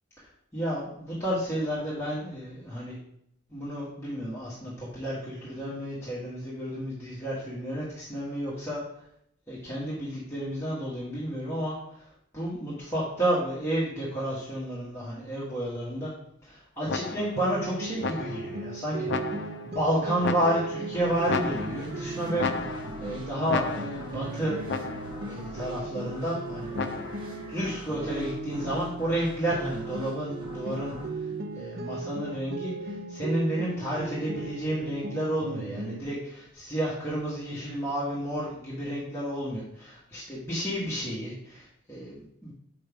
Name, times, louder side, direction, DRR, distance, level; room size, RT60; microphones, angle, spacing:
voice 1, 0.5-3.0 3.5-8.8 9.5-12.1 12.3-16.1 16.4-19.1 19.6-24.6 25.3-26.7 27.5-31.3 31.5-42.5, right 1 dB, 15° left, -9 dB, 1.4 m, -31 dB
sound 1, 16.9-17.5 18.0-18.6 19.1-19.7 20.2-20.9 21.3-22.0 22.4-23.1 23.5-24.2 24.7-25.3 26.7-27.4, left 4 dB, 60° left, 0.4 m, -33 dB
sound 2, 17.4-29.2 29.5-36.0, right 3 dB, 55° right, 0.5 m, -37 dB
sound 3, 20.9-32.4, equal, 25° right, 1.4 m, -44 dB
6.0 x 5.2 x 3.5 m, 0.73 s
head